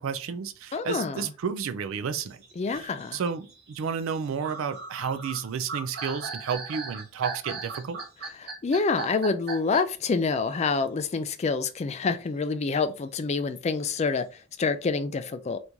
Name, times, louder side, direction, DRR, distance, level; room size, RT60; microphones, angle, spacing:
voice 1, 0.0-2.4 2.7-8.0, right 6 dB, 65° right, 0.4 m, -32 dB
voice 2, 0.7-1.3 2.6-3.2 8.4-14.3 14.6-15.6, left 4 dB, 30° left, 0.3 m, -27 dB
sound 1, 2.2-10.0, right 4 dB, 45° right, 0.9 m, -37 dB
3.0 x 2.6 x 3.4 m
head